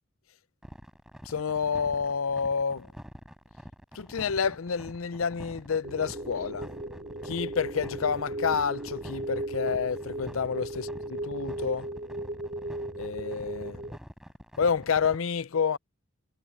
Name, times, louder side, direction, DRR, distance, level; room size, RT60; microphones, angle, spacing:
sound 1, 0.6-15.2, equal, 5° right, 7.6 m, -46 dB
voice 1, 1.2-2.9 3.9-6.7 7.2-10.9 11.3-11.9 13.0-13.8 14.6-15.8, left 6 dB, 85° left, 0.6 m, -29 dB
sound 2, 5.8-14.0, right 1 dB, 45° right, 3.3 m, -36 dB
head